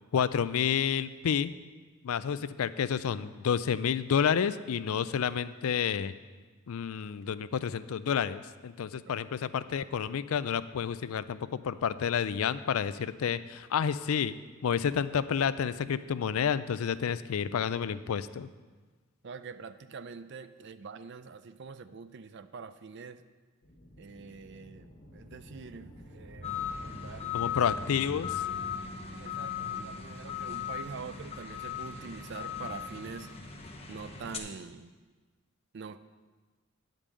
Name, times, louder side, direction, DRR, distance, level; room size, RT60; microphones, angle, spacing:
voice 1, 0.1-1.5 2.0-6.1 6.7-14.3 14.6-18.5 27.3-28.4, left 7 dB, 75° left, 15 dB, 0.4 m, -30 dB
voice 2, 19.2-23.2 24.0-27.7 29.1-33.3 33.9-34.9 35.7-36.0, right 5 dB, 55° right, 12 dB, 0.4 m, -45 dB
sound 1, 23.6-32.4, equal, 50° left, 1.5 m, -49 dB
sound 2, 26.4-34.4, left 8 dB, 30° left, 0.9 m, -37 dB
9.9 x 5.3 x 7.4 m, 1.4 s
head